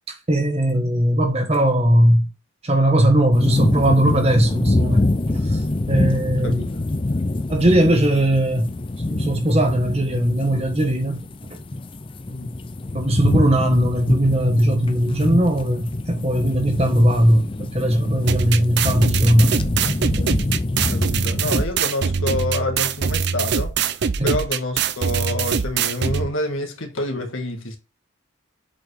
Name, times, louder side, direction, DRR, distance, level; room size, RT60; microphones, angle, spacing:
voice 1, 0.3-2.3 2.6-5.6 5.9-6.6 7.5-8.7 9.0-11.3 12.9-19.6 19.8-19.9 20.2-20.3 24.2-24.4, right 1 dB, 30° right, 1.3 m, -19 dB
sound 1, 3.3-21.6, left 2 dB, 25° left, 0.5 m, -25 dB
voice 2, 6.2-6.8 12.3-12.5 20.9-27.8, left 1 dB, 80° left, 1.8 m, -28 dB
sound 2, 18.3-26.3, right 6 dB, 55° right, 0.5 m, -23 dB
7.8 x 4.6 x 3.4 m
head